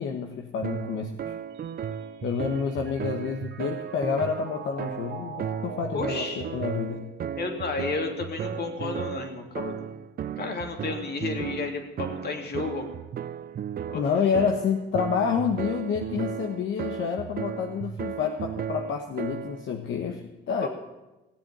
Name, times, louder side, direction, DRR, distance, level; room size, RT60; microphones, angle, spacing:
voice 1, 0.0-1.3 2.2-7.1 13.9-20.7, left 6 dB, 70° left, 4 dB, 1.2 m, -28 dB
sound 1, 0.6-19.7, right 8 dB, 50° right, 0.6 m, -35 dB
Mallet percussion, 1.6-8.0, right 5 dB, 75° right, 1.8 m, -44 dB
voice 2, 5.9-6.4 7.4-9.8 10.4-12.9 13.9-14.0 20.6-20.7, left 4 dB, 55° left, 4 dB, 2.8 m, -32 dB
17.5 x 7.8 x 8.8 m, 1.1 s
cardioid pair, 90°, 20 cm